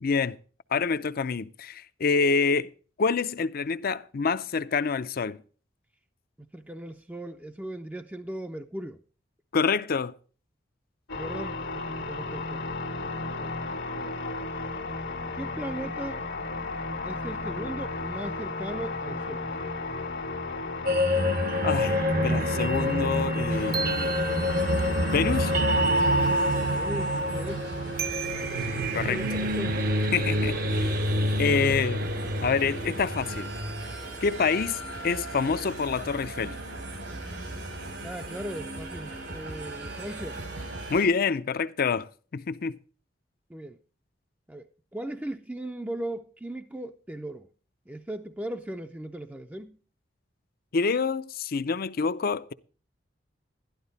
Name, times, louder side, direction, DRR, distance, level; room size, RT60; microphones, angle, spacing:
voice 1, 0.0-0.4 0.7-2.7 3.0-5.4 9.5-10.1 21.6-24.1 25.1-25.6 28.9-29.2 30.1-31.0 31.4-32.0 32.4-33.5 34.2-36.5 40.9-42.8 50.7-52.5, left 5 dB, 55° left, 0.5 m, -27 dB
voice 2, 6.5-9.0 11.2-12.7 13.4-13.6 13.9-14.2 15.3-16.2 17.0-19.5 26.7-27.7 28.8-29.8 38.0-40.4 43.5-43.8 44.5-47.5 47.9-49.8, right 1 dB, 10° right, 0.5 m, -38 dB
sound 1, 11.1-29.4, left 3 dB, 80° left, 1.6 m, -35 dB
sound 2, 20.9-33.8, equal, 55° right, 0.8 m, -27 dB
sound 3, 23.5-41.1, right 2 dB, 85° right, 3.7 m, -38 dB
12.0 x 11.5 x 4.0 m
head